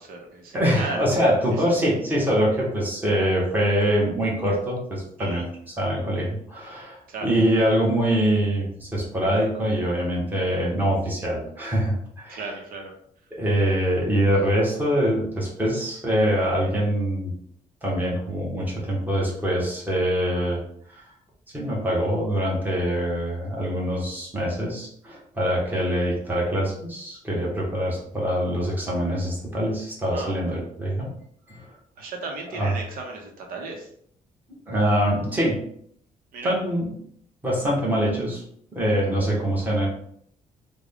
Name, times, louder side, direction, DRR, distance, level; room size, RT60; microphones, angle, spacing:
voice 1, 0.0-1.0 5.2-5.4 7.1-7.3 12.3-12.9 30.1-30.4 32.0-33.9 36.3-36.6, right 3 dB, 85° right, 1 dB, 0.8 m, -35 dB
voice 2, 0.5-12.4 13.4-17.3 17.8-20.6 20.9-21.0 21.5-31.1 31.5-31.6 32.5-32.7 34.7-35.6 36.4-36.9 37.4-38.4 38.7-39.9, equal, 10° right, -4 dB, 1.1 m, -24 dB
3.5 x 2.2 x 3.5 m, 0.66 s
cardioid pair, 150°, 15 cm